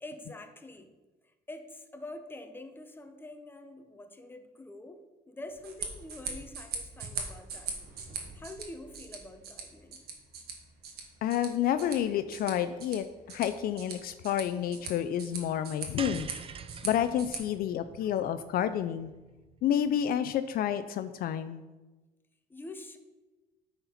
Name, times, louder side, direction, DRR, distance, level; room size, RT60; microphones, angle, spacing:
voice 1, 0.0-0.9 1.5-7.7 8.3-10.0 22.5-23.0, left 2 dB, 10° left, 6 dB, 0.8 m, -46 dB
sound 1, 5.5-17.4, right 5 dB, 65° right, 1.5 m, -42 dB
voice 2, 11.2-16.3 16.8-19.1 19.6-21.6, left 10 dB, 60° left, 12 dB, 0.4 m, -29 dB
sound 2, 16.0-20.4, right 6 dB, 35° right, 0.5 m, -45 dB
8.8 x 4.3 x 5.6 m, 1.2 s
cardioid pair, 110°, 17 cm